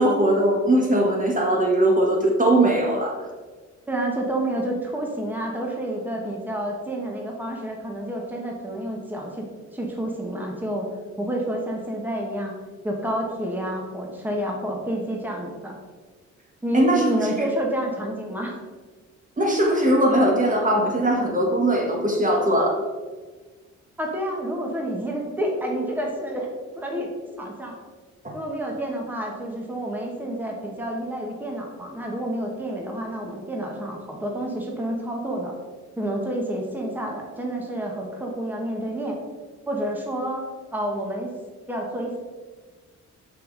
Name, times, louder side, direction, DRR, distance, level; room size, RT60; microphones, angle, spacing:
voice 1, 0.0-3.2 16.7-17.1 19.4-22.8 28.2-28.3, right 1 dB, 25° right, -1 dB, 1.3 m, -20 dB
voice 2, 3.9-10.9 11.2-12.5 12.8-15.8 16.6-18.5 24.0-26.5 26.8-27.1 27.3-27.7 28.3-35.5 36.0-39.2 39.7-41.3 41.7-42.2, right 1 dB, 5° right, -1 dB, 1.3 m, -29 dB
5.8 x 5.6 x 3.9 m, 1.4 s
cardioid pair, 90°, 30 cm